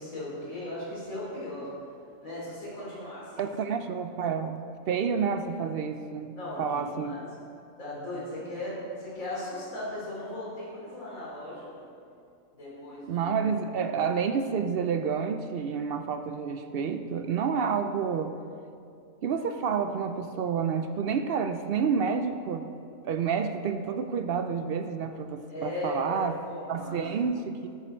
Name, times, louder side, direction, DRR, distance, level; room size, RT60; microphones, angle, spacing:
voice 1, 0.0-1.7 2.2-3.5 6.4-7.3 7.8-11.8 12.5-13.2 25.5-27.0, left 1 dB, 75° left, -7 dB, 3.5 m, -37 dB
voice 2, 3.4-7.2 13.1-18.3 19.2-22.6 23.0-26.4 26.7-27.7, right 6 dB, 65° right, 8 dB, 0.5 m, -29 dB
10.0 x 9.8 x 4.4 m, 2.5 s
omnidirectional pair, 1.5 m